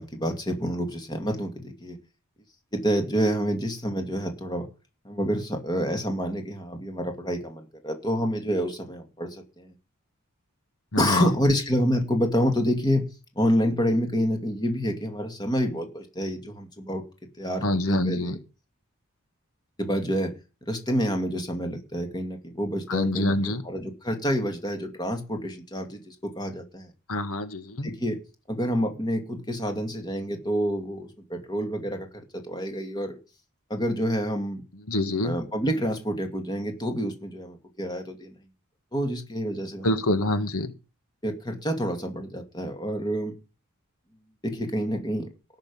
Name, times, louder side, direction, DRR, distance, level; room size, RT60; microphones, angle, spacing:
voice 1, 0.0-2.0 2.7-4.7 5.0-9.7 11.0-13.0 13.4-17.0 17.4-18.4 19.8-20.3 20.7-26.9 27.8-28.2 28.5-32.1 32.3-33.2 33.7-34.6 35.2-38.3 38.9-39.9 41.2-43.3 44.4-45.3, equal, 20° left, 5 dB, 2.4 m, -28 dB
voice 2, 10.9-11.3 17.6-18.4 22.9-23.6 27.1-27.9 34.9-35.4 39.8-40.7, left 1 dB, 75° left, 10 dB, 1.6 m, -26 dB
18.0 x 6.7 x 5.4 m, 0.31 s
head